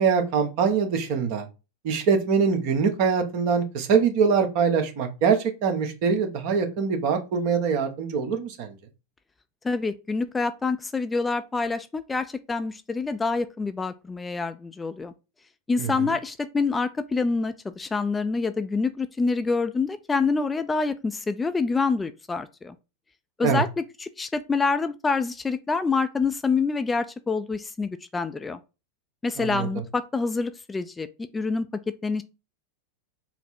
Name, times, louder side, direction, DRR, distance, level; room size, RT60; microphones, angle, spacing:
voice 1, 0.0-1.5 1.8-8.7 15.8-15.9 23.4-23.6 29.4-29.7, right 6 dB, 55° right, 1.0 m, -23 dB
voice 2, 9.6-15.1 15.7-22.8 23.4-28.6 29.2-31.1 31.3-32.2, left 4 dB, 15° left, 0.4 m, -26 dB
4.2 x 2.0 x 4.3 m
hypercardioid pair, 95°, 0 cm